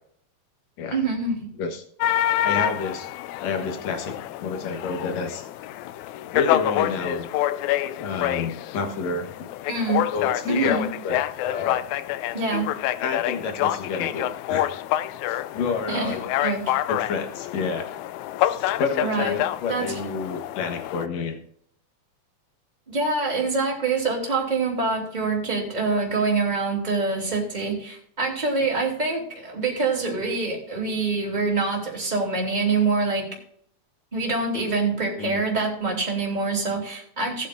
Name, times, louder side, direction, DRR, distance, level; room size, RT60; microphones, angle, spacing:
voice 1, 0.9-1.5 9.7-10.0 10.5-10.9 12.3-12.7 15.9-16.8 19.0-19.4 19.7-19.9 22.9-33.4 34.1-37.5, right 3 dB, 15° right, -2 dB, 3.0 m, -25 dB
voice 2, 1.6-3.1 3.4-4.1 4.4-5.5 6.3-7.3 8.0-9.5 10.1-11.8 13.0-14.7 15.3-16.2 16.9-17.9 18.4-21.4 35.1-35.4, left 4 dB, 65° left, 5 dB, 2.6 m, -29 dB
sound 1, 2.0-21.1, left 13 dB, 80° left, 1.9 m, -27 dB
18.5 x 8.3 x 2.6 m, 0.66 s
omnidirectional pair, 3.5 m